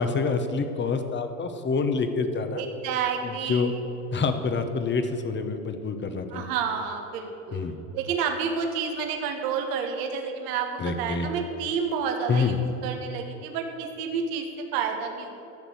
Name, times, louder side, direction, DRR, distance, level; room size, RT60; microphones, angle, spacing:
voice 1, 0.0-2.6 3.2-3.7 4.1-6.5 7.5-7.8 10.8-11.3 12.3-12.6, left 4 dB, 30° left, 8 dB, 1.2 m, -27 dB
voice 2, 2.5-3.8 6.3-7.6 7.9-15.3, right 6 dB, 60° right, 4 dB, 1.6 m, -30 dB
12.0 x 6.7 x 8.0 m, 3.0 s
hypercardioid pair, 90°, 40 cm